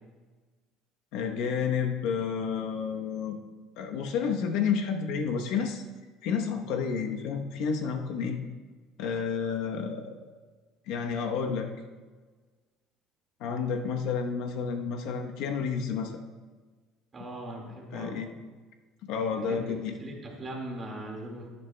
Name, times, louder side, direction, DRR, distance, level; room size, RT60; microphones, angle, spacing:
voice 1, 1.1-3.4 3.8-5.8 6.2-8.4 9.0-10.1 10.9-11.7 13.4-16.1 17.9-18.3 19.0-19.9, left 6 dB, 70° left, 3 dB, 0.9 m, -30 dB
voice 2, 17.1-18.3 19.3-21.5, right 1 dB, 25° right, 0 dB, 2.0 m, -40 dB
13.5 x 11.0 x 2.2 m, 1.4 s
cardioid pair, 140°, 0 cm